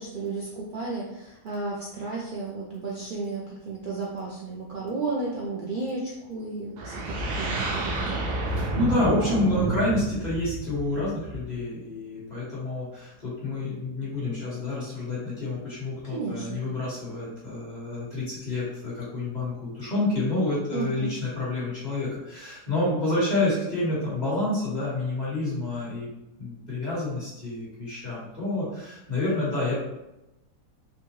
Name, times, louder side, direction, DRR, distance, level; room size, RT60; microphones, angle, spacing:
voice 1, 0.0-8.2 16.1-16.6 20.7-21.2, right 3 dB, 75° right, -5 dB, 0.4 m, -33 dB
sound 1, 6.8-11.6, right 2 dB, 90° right, 1.2 m, -30 dB
voice 2, 8.5-26.1 26.4-29.8, left 2 dB, 30° left, -9 dB, 1.7 m, -28 dB
4.3 x 2.3 x 3.0 m, 0.91 s
omnidirectional pair, 1.6 m